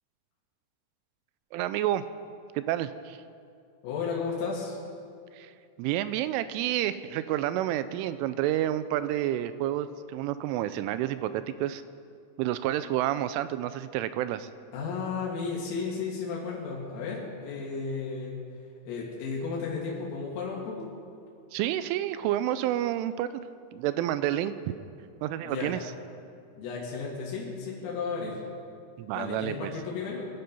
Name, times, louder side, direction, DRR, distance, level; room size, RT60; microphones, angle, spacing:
voice 1, 1.5-2.0 2.6-3.2 5.4-5.5 5.8-11.8 12.4-14.5 21.5-23.3 23.7-24.7 25.2-25.8 29.0-29.7, right 13 dB, 85° right, 13 dB, 3.0 m, -29 dB
voice 2, 3.8-4.8 14.7-18.4 18.8-20.9 25.4-25.8 26.6-28.4 29.1-30.3, left 5 dB, 90° left, -4 dB, 4.6 m, -33 dB
23.0 x 10.0 x 5.4 m, 2.4 s
omnidirectional pair, 5.7 m